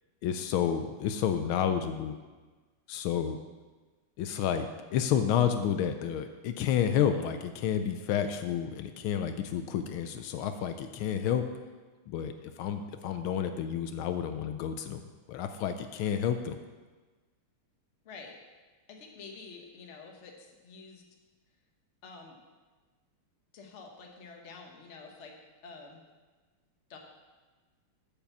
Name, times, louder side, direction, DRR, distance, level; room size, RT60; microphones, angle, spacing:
voice 1, 0.2-2.2 2.9-3.4 4.2-4.7 4.9-11.4 12.1-15.0 15.3-16.6, left 9 dB, 80° left, 8 dB, 1.4 m, -30 dB
voice 2, 18.0-18.4 18.9-21.0 22.0-22.4 23.5-25.3 25.6-26.0 26.9-27.0, left 4 dB, 40° left, 2 dB, 1.2 m, -48 dB
8.8 x 5.4 x 7.1 m, 1.3 s
omnidirectional pair, 2.3 m